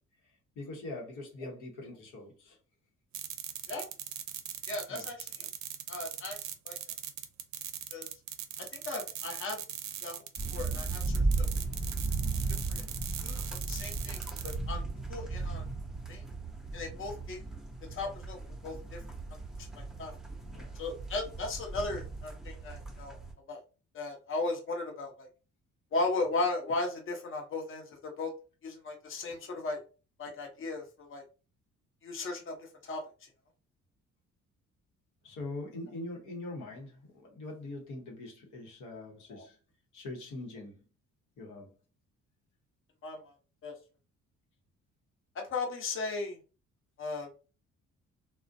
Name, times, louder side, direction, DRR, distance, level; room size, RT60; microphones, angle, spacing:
voice 1, 0.2-2.6 4.9-5.1 13.1-13.2 20.4-20.7 35.2-39.6 39.9-40.8 41.4-41.7, left 2 dB, 85° left, 0.9 m, -43 dB
sound 1, 3.1-14.6, right 10 dB, 65° right, 0.5 m, -40 dB
voice 2, 4.7-5.2 5.9-6.4 6.7-6.8 7.9-8.1 8.6-9.6 10.0-10.2 10.5-11.5 12.7-12.8 13.2-14.8 15.1-15.6 16.1-16.2 16.7-17.4 17.9-18.4 18.6-19.0 19.6-20.1 20.8-23.2 23.5-23.6 23.9-25.3 25.9-28.3 28.6-29.8 30.2-31.2 32.0-32.6 32.8-33.0 39.3-39.4 43.0-43.3 43.6-43.7 45.3-46.4 47.0-47.3, left 3 dB, 45° left, 0.8 m, -36 dB
sound 2, 10.4-23.3, right 3 dB, ahead, 0.6 m, -36 dB
2.4 x 2.1 x 2.5 m
cardioid pair, 90°, 30 cm